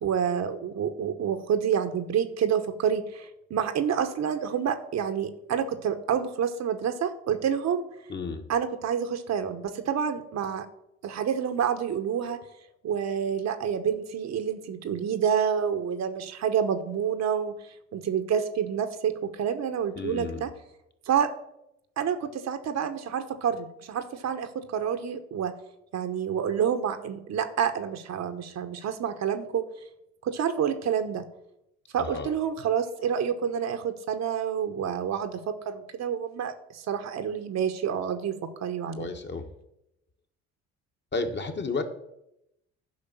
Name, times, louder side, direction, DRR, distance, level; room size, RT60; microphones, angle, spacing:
voice 1, 0.0-7.8 8.5-10.7 11.0-12.4 12.8-17.5 17.9-20.5 21.1-21.3 22.0-25.5 25.9-29.6 30.2-31.3 31.9-39.1, right 8 dB, 55° right, 8 dB, 1.1 m, -28 dB
voice 2, 8.1-8.5 20.0-20.5 32.0-32.3 39.0-39.5 41.1-41.8, left 3 dB, 35° left, 5 dB, 1.8 m, -32 dB
10.5 x 5.2 x 6.9 m, 0.82 s
hypercardioid pair, 60°, 32 cm